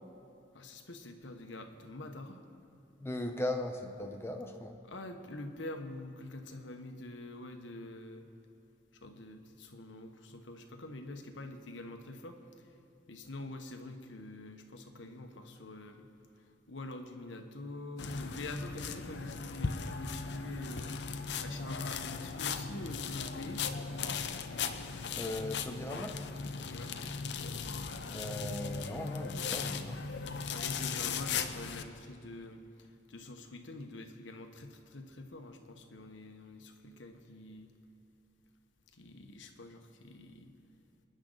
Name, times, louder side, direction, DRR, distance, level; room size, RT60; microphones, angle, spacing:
voice 1, 0.5-2.4 4.9-8.3 9.0-12.7 13.1-16.1 16.7-20.9 21.1-24.2 26.7-26.9 30.5-37.7 38.9-40.5, left 2 dB, 85° left, 5 dB, 1.2 m, -45 dB
voice 2, 3.0-4.8 25.1-26.2 28.1-30.0, left 1 dB, 15° left, 3 dB, 0.9 m, -38 dB
sound 1, 18.0-31.8, left 5 dB, 65° left, 0.7 m, -38 dB
26.5 x 10.5 x 4.0 m, 2.7 s
head